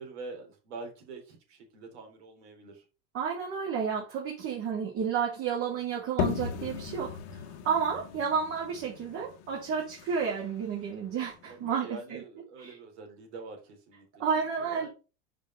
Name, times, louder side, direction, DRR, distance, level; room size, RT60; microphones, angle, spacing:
voice 1, 0.0-2.8 5.7-5.8 11.5-14.9, right 3 dB, 85° right, 3.5 m, -45 dB
voice 2, 3.1-12.2 12.6-12.7 14.2-14.9, right 6 dB, 45° right, 2.2 m, -31 dB
sound 1, 6.2-11.6, left 8 dB, 60° left, 1.2 m, -37 dB
5.4 x 5.1 x 5.5 m
supercardioid pair, 140°, 32 cm